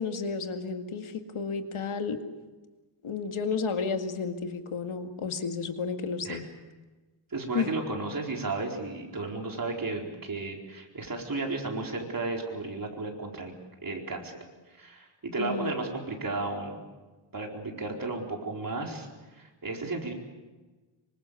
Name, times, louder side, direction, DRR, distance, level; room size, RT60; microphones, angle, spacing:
voice 1, 0.0-2.2 3.0-6.5 7.5-7.7 15.4-15.8, left 5 dB, 75° left, 6 dB, 2.2 m, -32 dB
voice 2, 7.3-13.5 13.8-14.4 14.8-16.8 17.3-20.1, right 3 dB, 40° right, 1 dB, 4.5 m, -34 dB
26.5 x 24.5 x 7.1 m, 1.2 s
wide cardioid pair, 130°, 50 cm